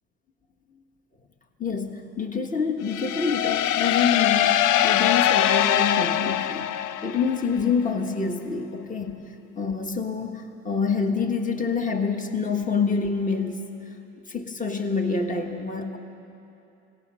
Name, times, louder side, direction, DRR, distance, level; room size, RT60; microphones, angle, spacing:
voice 1, 1.6-6.7 7.0-9.3 9.5-13.7 14.3-16.0, left 5 dB, 25° left, 4 dB, 1.6 m, -27 dB
sound 1, 2.9-7.6, left 11 dB, 90° left, 0.5 m, -22 dB
28.0 x 18.0 x 6.4 m, 2.9 s
cardioid pair, 90°, 30 cm